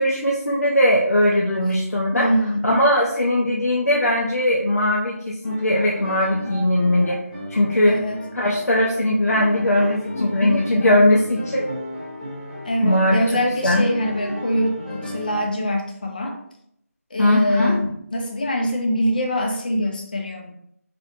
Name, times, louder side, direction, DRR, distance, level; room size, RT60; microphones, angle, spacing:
voice 1, 0.0-2.3 2.6-7.2 7.5-7.9 8.3-11.7 12.8-13.2 13.6-13.9 17.2-17.8, left 1 dB, 80° left, -3 dB, 0.6 m, -19 dB
voice 2, 2.1-2.6 7.9-8.2 10.1-10.6 12.6-16.4 17.1-20.5, equal, 35° left, 2 dB, 0.5 m, -24 dB
sound 1, 5.4-15.4, equal, 10° left, 0.9 m, -35 dB
3.1 x 2.8 x 2.6 m, 0.72 s
figure-of-eight pair, 165°, 8 cm